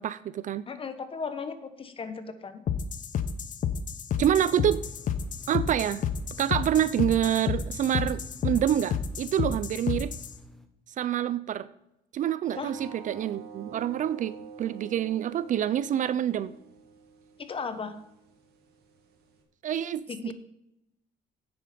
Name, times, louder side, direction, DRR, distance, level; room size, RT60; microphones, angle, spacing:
voice 1, 0.0-0.6 4.2-4.8 5.5-6.0 6.4-10.1 11.0-11.7 12.1-16.5 19.6-20.3, right 10 dB, 50° right, 16 dB, 0.5 m, -27 dB
voice 2, 0.7-2.6 12.6-12.7 17.4-17.9 20.1-20.3, left 5 dB, 30° left, 10 dB, 1.2 m, -36 dB
sound 1, 2.7-10.3, left 8 dB, 50° left, 0.8 m, -31 dB
sound 2, 4.4-10.7, left 3 dB, ahead, 1.0 m, -51 dB
sound 3, 12.5-19.4, right 5 dB, 70° right, 2.1 m, -47 dB
9.6 x 8.6 x 5.1 m, 0.84 s
cardioid pair, 110°, 17 cm